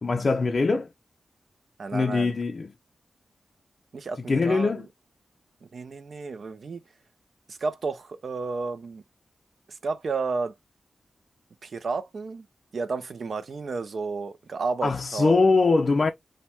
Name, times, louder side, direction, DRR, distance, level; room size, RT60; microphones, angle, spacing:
voice 1, 0.0-0.9 1.9-2.7 4.3-4.9 14.8-16.1, left 3 dB, 55° left, 0.3 m, -22 dB
voice 2, 1.8-2.3 3.9-4.9 5.6-6.8 7.5-9.0 9.8-10.5 11.6-12.5 12.7-15.4, right 4 dB, 70° right, 0.4 m, -32 dB
2.7 x 2.1 x 3.2 m
cardioid pair, 55°, 0 cm